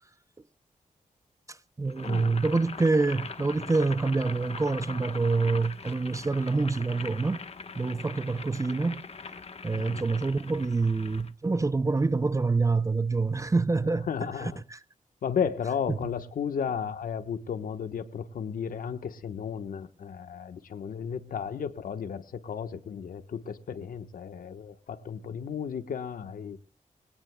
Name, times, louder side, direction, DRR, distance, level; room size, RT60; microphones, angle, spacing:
voice 1, 1.5-7.4 7.8-9.0 9.6-14.1 14.4-14.8 15.9-16.0, right 3 dB, 20° right, 0.6 m, -26 dB
Boiling, 1.9-11.3, left 5 dB, 45° left, 1.3 m, -42 dB
voice 2, 2.0-2.4 9.7-10.0 14.1-14.6 15.2-26.6, left 7 dB, 85° left, 1.3 m, -34 dB
23.5 x 17.5 x 2.3 m
cardioid pair, 85°, 14 cm